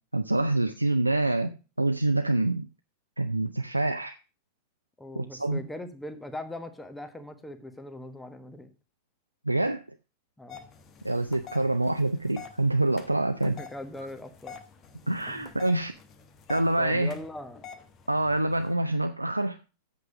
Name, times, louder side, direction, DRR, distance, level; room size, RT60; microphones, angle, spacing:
voice 1, 0.1-2.7 3.2-4.2 5.2-5.6 9.5-9.8 11.0-13.6 15.1-15.9 16.5-17.2 18.1-19.6, right 2 dB, 85° right, 7 dB, 0.5 m, -26 dB
voice 2, 5.0-8.7 10.4-10.7 13.4-14.6 15.3-15.5 16.8-17.6, left 1 dB, 5° left, 9 dB, 1.3 m, -40 dB
sound 1, 10.5-18.7, left 6 dB, 30° left, 1.2 m, -48 dB
8.2 x 6.8 x 6.1 m, 0.32 s
figure-of-eight pair, 90°, 0 cm